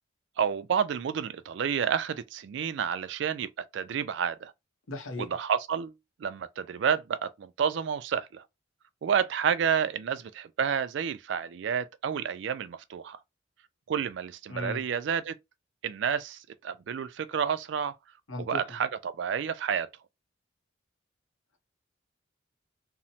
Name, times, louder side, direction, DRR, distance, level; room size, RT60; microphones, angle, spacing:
voice 1, 0.4-4.5 5.2-5.9 6.2-8.4 9.0-13.2 13.9-15.3 15.8-17.9 18.4-19.9, right 7 dB, 65° right, 0.3 m, -30 dB
voice 2, 4.9-5.3 14.5-14.8 18.3-18.6, left 2 dB, 90° left, 0.8 m, -36 dB
2.9 x 2.1 x 2.7 m
head